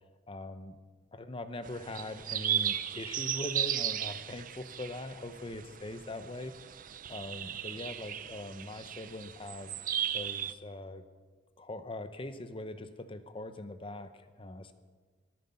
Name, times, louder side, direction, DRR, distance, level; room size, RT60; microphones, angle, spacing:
voice 1, 0.3-0.7 1.1-6.7 7.1-9.7 10.1-11.0 11.6-14.7, left 2 dB, 25° left, 10 dB, 0.7 m, -42 dB
sound 1, 1.6-10.5, right 10 dB, 45° right, 0.5 m, -36 dB
13.5 x 13.0 x 5.7 m, 1.5 s
head